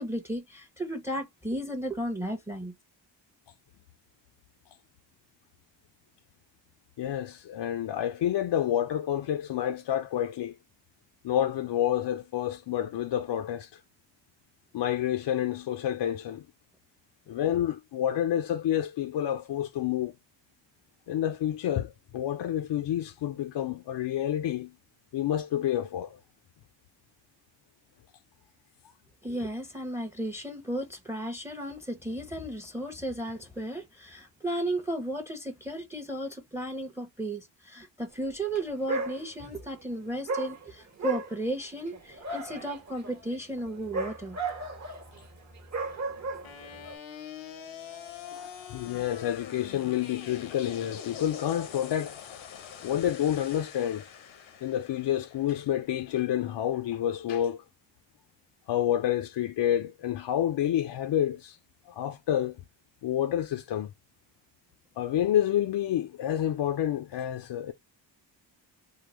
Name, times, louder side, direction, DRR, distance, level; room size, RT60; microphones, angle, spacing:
voice 1, 0.0-2.7 29.2-44.4, right 1 dB, 5° right, 0.7 m, -34 dB
voice 2, 7.0-10.6 11.2-13.8 14.7-16.5 17.3-20.1 21.1-24.7 25.1-26.2 48.3-52.2 52.8-54.0 54.6-57.6 58.7-61.6 61.9-62.6 63.0-63.9 65.0-67.7, left 11 dB, 65° left, 0.6 m, -29 dB
Dog, 38.4-38.6 38.9-39.6 40.3-46.9, right 3 dB, 35° right, 1.1 m, -35 dB
sound 1, 46.4-56.5, left 8 dB, 85° left, 0.9 m, -44 dB
3.8 x 2.0 x 3.0 m
cardioid pair, 75°, 45 cm